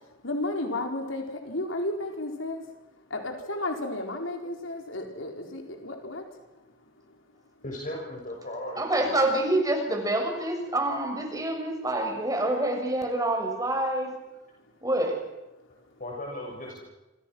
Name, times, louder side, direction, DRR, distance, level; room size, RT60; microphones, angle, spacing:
voice 1, 0.2-2.6 3.1-6.2, left 2 dB, 90° left, 3 dB, 4.3 m, -32 dB
voice 2, 7.6-9.2 16.0-16.8, left 1 dB, 45° left, -1 dB, 6.5 m, -37 dB
voice 3, 8.8-14.1 14.8-15.2, right 1 dB, 20° right, 3 dB, 6.5 m, -27 dB
29.5 x 27.5 x 6.3 m, 1.0 s
head